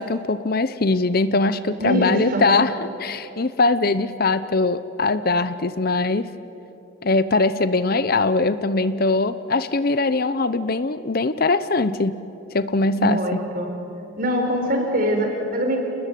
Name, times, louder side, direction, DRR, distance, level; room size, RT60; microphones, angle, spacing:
voice 1, 0.0-2.7 3.0-6.3 7.0-12.2 12.5-13.4, left 3 dB, 45° left, 14 dB, 0.7 m, -21 dB
voice 2, 1.8-2.4 13.0-13.7 14.2-15.8, equal, 45° right, 3 dB, 4.8 m, -23 dB
29.0 x 20.0 x 9.3 m, 2.9 s
head